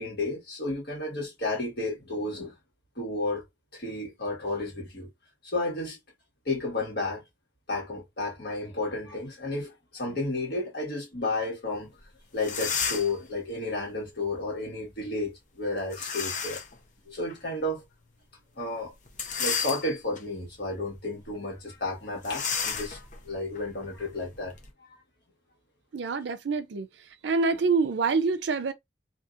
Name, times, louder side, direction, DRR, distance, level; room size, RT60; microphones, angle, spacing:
voice 1, 0.0-2.6 2.9-3.4 3.7-5.1 5.4-6.0 6.4-7.2 7.7-12.0 12.3-16.6 17.1-17.8 18.6-18.9 19.4-24.5 24.9-25.0, left 2 dB, 60° left, 1.7 m, -32 dB
sound 1, 12.0-12.1 12.4-13.2 15.9-16.8 17.3-17.4 19.1-20.2 20.8-21.0 21.2-21.4 22.2-24.7, left 6 dB, 45° left, 0.7 m, -32 dB
voice 2, 25.9-26.9 27.2-28.7, right 4 dB, 75° right, 0.5 m, -26 dB
2.7 x 2.7 x 2.5 m
head